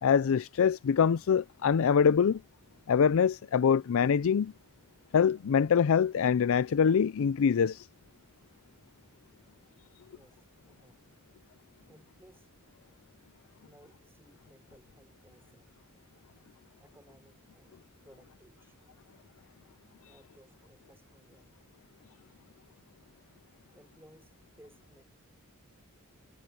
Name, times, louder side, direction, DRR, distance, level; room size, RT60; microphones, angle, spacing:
voice 1, 0.0-2.4 2.9-4.5 5.1-7.9, left 7 dB, 65° left, 0.4 m, -24 dB
voice 2, 10.1-11.1 11.9-12.5 13.6-16.0 16.8-18.9 20.0-21.6 22.5-22.6 23.7-25.0, right 1 dB, 10° right, 3.9 m, -61 dB
head